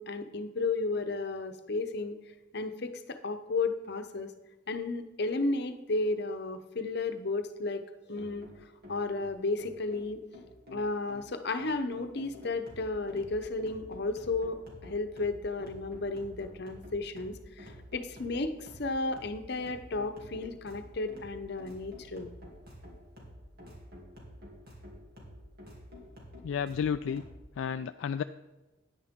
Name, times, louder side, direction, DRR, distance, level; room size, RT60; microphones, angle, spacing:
voice 1, 0.0-2.2 2.5-4.3 4.7-7.8 8.1-8.5 8.9-10.2 10.7-14.6 14.8-18.5 18.8-22.3, left 3 dB, 60° left, 8 dB, 0.8 m, -33 dB
sound 1, 8.2-27.4, left 1 dB, 55° right, 2.9 m, -50 dB
voice 2, 26.4-27.2 27.6-28.2, left 7 dB, 80° left, 10 dB, 0.3 m, -31 dB
9.8 x 9.7 x 3.7 m, 1.1 s
head